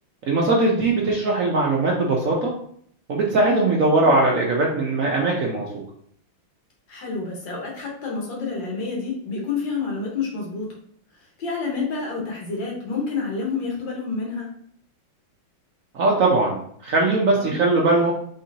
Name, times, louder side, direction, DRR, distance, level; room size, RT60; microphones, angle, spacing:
voice 1, 0.3-2.5 3.1-5.7 15.9-18.1, right 2 dB, 65° right, -2 dB, 0.8 m, -20 dB
voice 2, 6.9-10.7 11.2-14.5 17.3-17.5, left 4 dB, 65° left, -2 dB, 2.0 m, -29 dB
5.2 x 3.4 x 2.8 m, 0.63 s
omnidirectional pair, 2.3 m